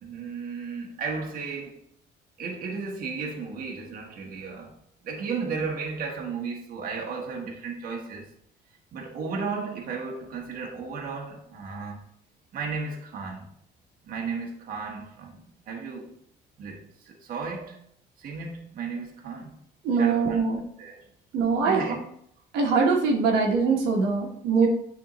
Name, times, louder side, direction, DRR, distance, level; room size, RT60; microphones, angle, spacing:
voice 1, 0.0-1.8 2.4-4.8 5.0-8.3 8.9-12.0 12.5-13.5 14.0-16.1 16.6-17.8 18.2-19.5 20.0-21.1 21.6-22.0 24.6-24.7, right 5 dB, 60° right, 1.2 m, -34 dB
voice 2, 19.8-20.6 21.3-21.8 22.5-24.7, right 4 dB, 80° right, 1.2 m, -22 dB
9.1 x 3.6 x 3.0 m
cardioid pair, 110°, 17 cm